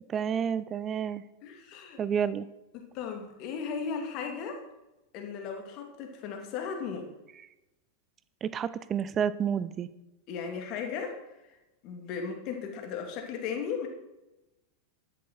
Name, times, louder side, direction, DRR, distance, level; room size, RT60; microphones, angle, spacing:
voice 1, 0.1-1.2 2.0-2.5 8.4-9.9, right 8 dB, 25° right, 16 dB, 0.6 m, -29 dB
voice 2, 1.4-2.0 2.7-4.6 5.1-7.1 10.3-11.2 11.8-13.9, left 6 dB, 40° left, 3 dB, 2.7 m, -36 dB
13.0 x 10.5 x 4.4 m, 0.99 s
figure-of-eight pair, 90°, 0 cm